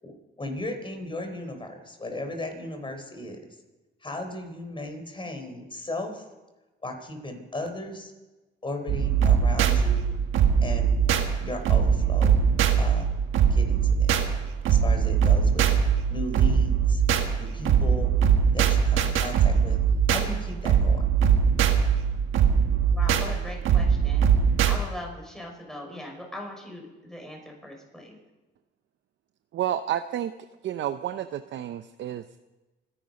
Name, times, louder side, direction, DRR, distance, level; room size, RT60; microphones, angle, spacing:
voice 1, 0.0-3.4 4.0-6.2 6.8-8.1 8.6-10.1 10.6-11.0 11.4-12.4 12.8-13.1 13.5-14.1 14.7-15.7 16.1-17.0 17.4-18.1 18.5-19.8 20.1-21.1, left 2 dB, 25° left, 5 dB, 3.8 m, -36 dB
sound 1, 8.9-24.8, right 7 dB, 85° right, 1.6 m, -22 dB
voice 2, 22.9-24.3 24.7-28.2, left 1 dB, ahead, 1 dB, 5.8 m, -40 dB
voice 3, 29.5-30.3 30.6-32.4, right 11 dB, 65° right, 10 dB, 0.7 m, -30 dB
25.5 x 11.0 x 5.3 m, 1.1 s
cardioid pair, 90°, 20 cm